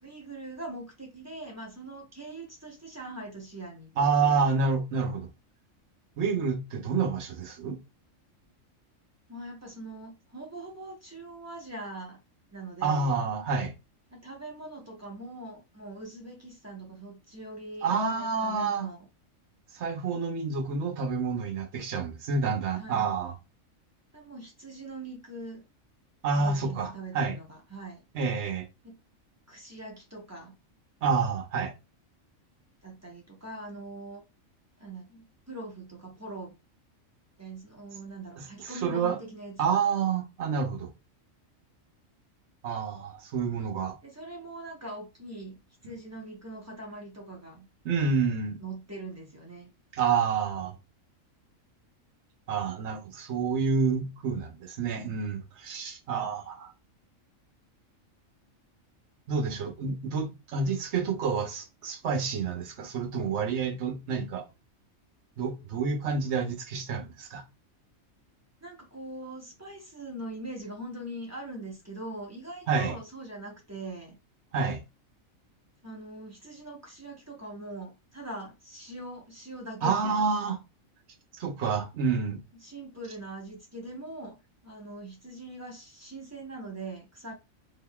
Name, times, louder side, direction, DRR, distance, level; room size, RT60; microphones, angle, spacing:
voice 1, 0.0-4.5 9.3-12.2 12.5-13.2 14.1-19.1 22.4-23.1 24.1-25.6 26.3-28.0 28.8-29.0 29.5-30.5 32.8-34.2 34.8-36.5 37.4-39.8 44.0-45.6 45.8-47.7 48.6-49.7 68.6-74.2 75.8-80.3 82.5-84.4 84.6-87.3, right 2 dB, 15° right, 0.8 m, -42 dB
voice 2, 4.0-5.3 6.2-7.8 12.8-13.7 17.8-18.9 19.7-23.3 26.2-27.4 28.1-28.6 31.0-31.7 38.4-39.2 39.6-40.9 42.6-43.9 45.8-46.0 47.8-48.6 49.9-50.7 52.5-56.7 59.3-64.4 65.4-67.4 72.7-73.0 74.5-74.8 79.8-80.6 81.3-82.4, right 5 dB, 60° right, 1.0 m, -28 dB
3.8 x 3.0 x 2.3 m
omnidirectional pair, 1.4 m